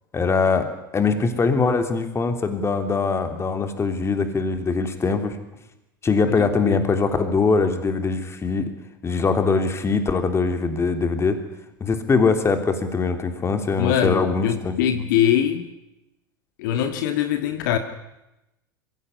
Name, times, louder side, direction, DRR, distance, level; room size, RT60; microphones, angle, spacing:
voice 1, 0.1-5.3 6.0-8.7 9.0-11.4 11.8-14.8, left 4 dB, 25° left, 8 dB, 3.2 m, -22 dB
voice 2, 6.3-6.8 13.8-15.7 16.6-17.8, left 10 dB, 65° left, 8 dB, 1.8 m, -23 dB
22.0 x 16.5 x 9.7 m, 0.93 s
hypercardioid pair, 90°, 11 cm